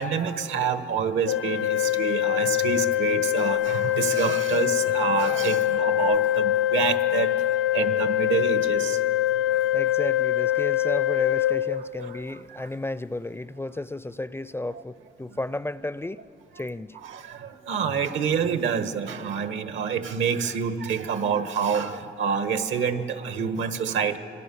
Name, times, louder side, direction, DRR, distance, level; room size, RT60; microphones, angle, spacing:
voice 1, 0.0-7.3 7.7-9.0 12.0-12.1 14.7-14.8 17.0-24.2, right 6 dB, 75° right, 9 dB, 1.4 m, -27 dB
Organ, 1.3-12.3, left 13 dB, 70° left, 0.4 m, -24 dB
voice 2, 9.7-16.2 16.6-17.0, left 2 dB, 10° left, 16 dB, 0.5 m, -33 dB
26.5 x 22.5 x 7.1 m, 2.9 s
cardioid pair, 90°, 20 cm